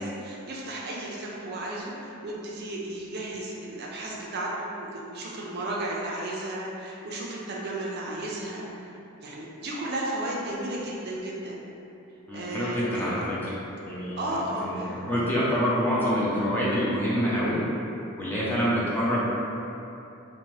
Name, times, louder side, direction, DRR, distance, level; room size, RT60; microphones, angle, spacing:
voice 1, 0.0-8.8 9.2-11.6 12.3-13.2 14.2-14.9, right 1 dB, 50° right, -4 dB, 0.4 m, -34 dB
voice 2, 12.3-13.5 13.9-14.2 14.6-17.6 18.2-19.2, equal, 10° left, -8 dB, 0.4 m, -26 dB
2.8 x 2.1 x 3.0 m, 2.8 s
head